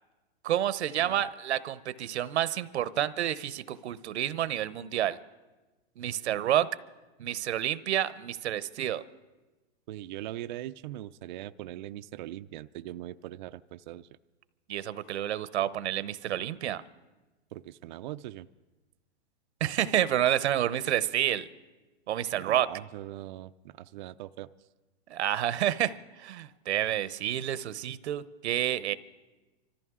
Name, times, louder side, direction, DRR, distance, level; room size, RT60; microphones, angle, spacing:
voice 1, 0.4-5.2 6.0-6.7 7.2-9.0 14.7-16.8 19.6-21.5 22.1-22.7 25.1-28.9, right 11 dB, 80° right, 16 dB, 0.8 m, -29 dB
voice 2, 9.9-14.1 17.5-18.5 22.4-24.5, right 14 dB, 45° right, 11 dB, 0.4 m, -41 dB
25.5 x 14.0 x 3.7 m, 1.2 s
hypercardioid pair, 155°, 33 cm